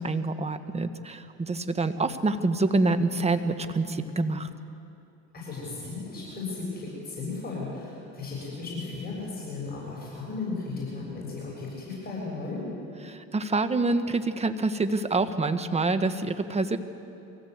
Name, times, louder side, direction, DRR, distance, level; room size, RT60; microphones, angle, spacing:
voice 1, 0.0-4.5 13.0-16.8, right 3 dB, 20° right, 9 dB, 1.4 m, -26 dB
voice 2, 5.3-12.7, left 3 dB, 30° left, -5 dB, 7.1 m, -35 dB
24.0 x 16.5 x 8.1 m, 2.6 s
supercardioid pair, 90°, 33 cm